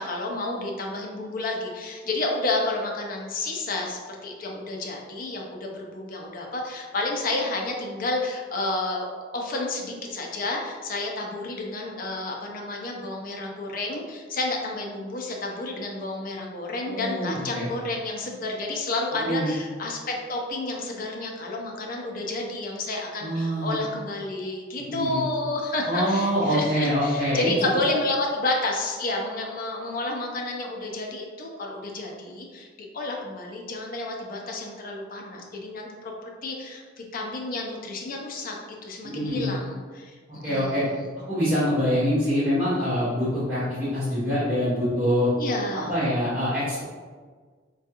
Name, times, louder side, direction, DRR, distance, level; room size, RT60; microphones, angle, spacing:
voice 1, 0.0-9.1 9.3-20.0 20.3-32.7 32.9-38.5 38.8-40.2 40.4-41.1 45.3-45.9, left 2 dB, 50° left, 0 dB, 0.5 m, -30 dB
voice 2, 16.9-17.7 19.1-19.5 23.2-23.8 24.8-25.2 25.8-27.5 39.0-39.5 40.4-40.8 41.3-45.3 45.7-46.8, equal, 10° right, -15 dB, 0.9 m, -25 dB
3.5 x 2.3 x 2.8 m, 1.5 s
head